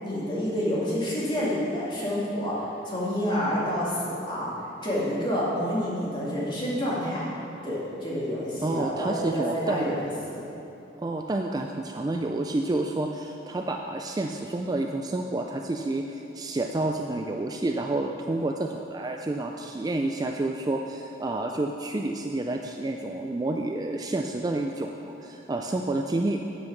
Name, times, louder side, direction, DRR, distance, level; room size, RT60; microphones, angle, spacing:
voice 1, 0.0-2.6 2.9-4.5 4.8-7.3 7.6-10.4, equal, 25° left, -7 dB, 2.2 m, -28 dB
voice 2, 8.6-9.9 11.0-26.4, right 2 dB, 20° right, 3 dB, 0.3 m, -29 dB
8.2 x 7.8 x 6.0 m, 2.8 s
head